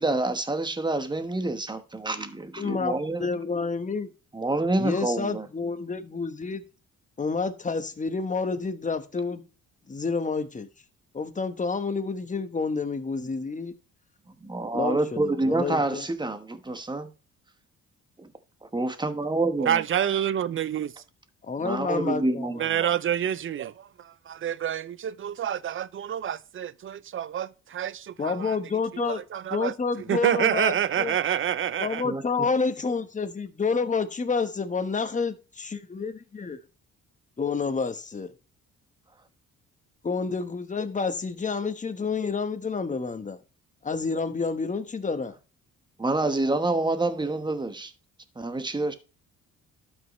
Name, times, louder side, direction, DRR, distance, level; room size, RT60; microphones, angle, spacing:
voice 1, 0.0-3.3 4.3-5.5 14.4-17.1 18.2-18.3 18.7-19.8 21.6-22.6 32.0-32.5 46.0-47.9 48.4-48.9, right 2 dB, 15° right, 1.1 m, -27 dB
voice 2, 2.6-2.9 3.2-4.1 4.8-6.6 7.2-9.4 9.9-10.7 11.1-13.7 14.7-16.0 21.5-22.7 28.2-29.2 29.5-31.1 31.8-36.6 37.4-38.3 40.0-43.4 43.8-45.3, left 4 dB, 25° left, 1.1 m, -29 dB
voice 3, 19.6-20.9 22.6-28.6 29.0-32.0, right 10 dB, 45° right, 0.5 m, -28 dB
12.0 x 5.5 x 3.1 m
cardioid pair, 90°, 30 cm